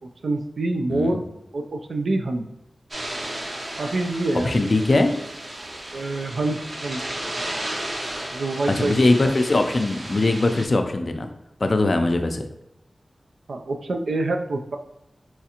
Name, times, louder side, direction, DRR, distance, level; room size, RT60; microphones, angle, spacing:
voice 1, 0.2-1.2 1.5-2.4 3.7-4.6 5.9-7.0 8.3-9.0 13.5-14.8, right 2 dB, 90° right, 5 dB, 0.3 m, -26 dB
voice 2, 0.9-1.2 4.4-5.2 8.7-11.3 11.6-12.5, left 2 dB, 50° left, 6 dB, 0.4 m, -21 dB
sound 1, 2.9-10.7, right 1 dB, 60° right, 0.7 m, -34 dB
4.2 x 2.4 x 2.8 m, 0.83 s
wide cardioid pair, 70°, 0 cm